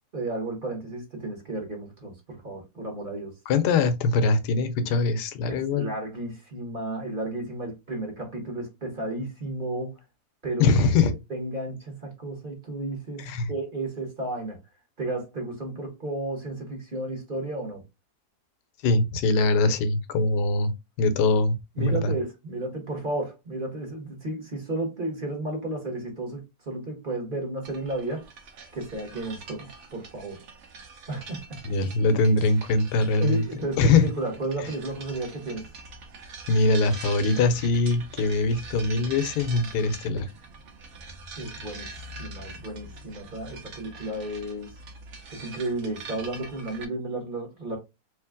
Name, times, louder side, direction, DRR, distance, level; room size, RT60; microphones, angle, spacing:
voice 1, 0.1-3.4 5.5-10.0 10.4-10.7 11.0-14.6 15.0-17.8 21.7-28.3 28.7-30.4 31.1-31.6 33.2-35.7 41.4-41.9 42.2-44.8 45.3-47.8, right 2 dB, 35° right, 1.3 m, -33 dB
voice 2, 3.5-5.9 10.6-11.2 13.3-13.5 18.8-20.7 21.0-22.1 31.6-33.4 33.8-34.0 36.5-40.3, left 3 dB, 80° left, 1.3 m, -22 dB
sound 1, 27.6-46.8, right 3 dB, 55° right, 0.9 m, -44 dB
3.2 x 3.1 x 3.5 m
omnidirectional pair, 1.8 m